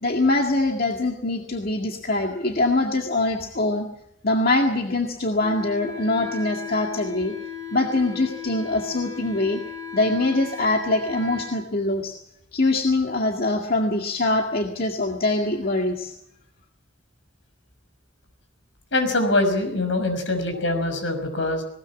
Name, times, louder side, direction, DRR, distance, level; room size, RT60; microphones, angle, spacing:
voice 1, 0.0-3.9 4.2-7.3 7.7-9.6 9.9-12.2 12.5-16.1, left 2 dB, 50° left, 2 dB, 2.0 m, -23 dB
Wind instrument woodwind instrument, 5.4-11.6, left 6 dB, 15° left, 4.9 m, -36 dB
voice 2, 18.9-21.6, left 2 dB, 75° left, 7 dB, 5.9 m, -23 dB
20.0 x 19.5 x 7.4 m, 0.75 s
head